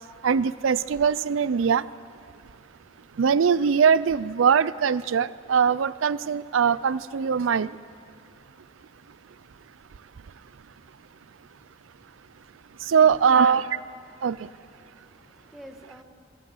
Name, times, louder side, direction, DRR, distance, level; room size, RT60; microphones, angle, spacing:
voice 1, 0.2-1.9 3.2-7.8 12.8-13.7 14.2-14.5, right 6 dB, 85° right, 18 dB, 0.4 m, -21 dB
voice 2, 13.0-13.6 14.8-16.0, equal, ahead, 4 dB, 1.6 m, -44 dB
23.5 x 16.0 x 7.8 m, 2.6 s
head